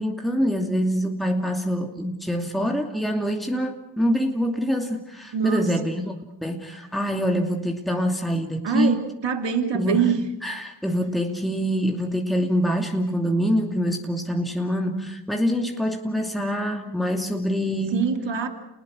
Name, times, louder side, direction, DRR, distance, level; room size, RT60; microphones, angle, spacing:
voice 1, 0.0-6.1 6.4-9.0 9.7-10.2 10.4-18.1, equal, ahead, 2 dB, 2.7 m, -25 dB
voice 2, 5.3-5.7 8.6-10.2 17.9-18.5, right 7 dB, 60° right, 6 dB, 2.8 m, -24 dB
28.5 x 20.5 x 6.5 m, 0.90 s
supercardioid pair, 50°, 50 cm